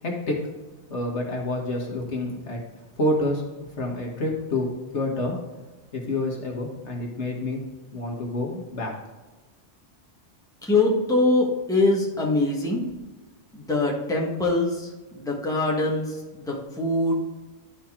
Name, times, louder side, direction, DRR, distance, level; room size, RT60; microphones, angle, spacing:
voice 1, 0.0-0.5 0.9-2.6 3.0-5.4 5.9-7.6 7.9-8.9, left 1 dB, 70° left, 0 dB, 1.7 m, -28 dB
voice 2, 10.6-12.8 13.5-17.1, left 2 dB, 5° left, -3 dB, 1.3 m, -23 dB
11.5 x 4.4 x 3.6 m, 1.2 s
omnidirectional pair, 1.2 m